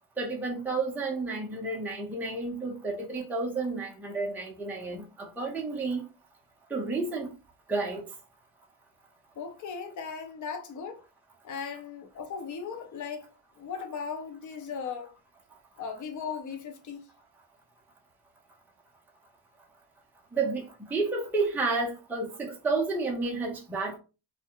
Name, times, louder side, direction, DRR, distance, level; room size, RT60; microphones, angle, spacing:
voice 1, 0.2-6.0 6.7-7.3 7.7-8.1 20.3-24.0, right 3 dB, 5° right, 0.5 m, -31 dB
voice 2, 9.4-11.0 11.4-13.3 13.6-15.1 15.8-17.0, left 6 dB, 40° left, 0.7 m, -37 dB
2.3 x 2.1 x 2.9 m
supercardioid pair, 95°, 50 cm